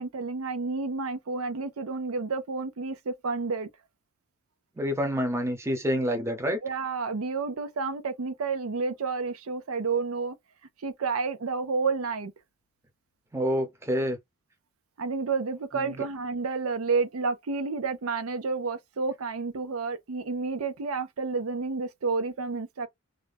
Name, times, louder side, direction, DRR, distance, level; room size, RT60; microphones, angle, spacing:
voice 1, 0.0-3.7 6.6-10.4 10.8-12.3 15.0-22.9, right 4 dB, 85° right, 0.6 m, -30 dB
voice 2, 4.8-6.6 13.3-14.2, equal, 15° right, 0.7 m, -27 dB
2.5 x 2.1 x 3.4 m
head